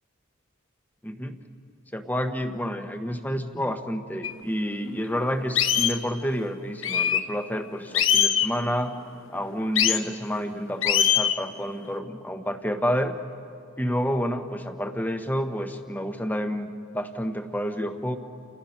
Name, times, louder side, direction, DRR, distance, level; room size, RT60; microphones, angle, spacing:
voice 1, 1.0-1.4 1.9-9.0 9.3-13.2 13.8-16.7 16.9-18.2, equal, 10° left, 7 dB, 1.1 m, -29 dB
sound 1, 4.2-4.3 4.9-5.0 5.6-6.0 6.8-7.2 7.9-8.5 9.8-10.0 10.8-11.4, left 9 dB, 70° left, 1.0 m, -22 dB
30.0 x 29.0 x 5.8 m, 2.5 s
head